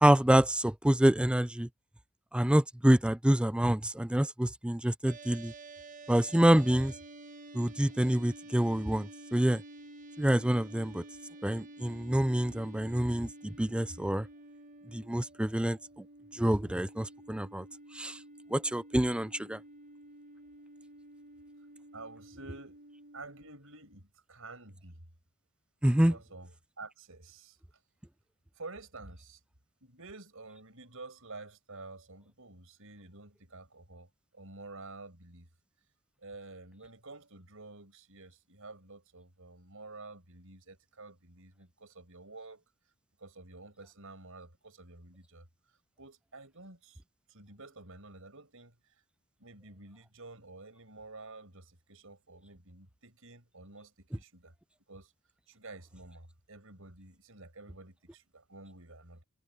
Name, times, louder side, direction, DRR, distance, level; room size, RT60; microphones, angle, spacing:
voice 1, 0.0-1.7 2.3-5.5 6.1-6.9 7.5-9.6 10.2-11.0 11.4-14.3 14.9-15.8 16.3-17.6 17.9-18.2 18.5-19.6 25.8-26.2, right 1 dB, 5° right, 0.4 m, -27 dB
sound 1, 5.1-23.5, right 2 dB, 40° right, 1.4 m, -51 dB
voice 2, 21.9-22.8 23.1-25.0 25.9-27.6 28.5-29.4 29.8-35.5 36.2-42.6 43.2-45.5 46.0-47.0 47.3-49.0 49.4-54.5 54.9-55.1 55.5-59.2, right 3 dB, 70° right, 6.8 m, -50 dB
head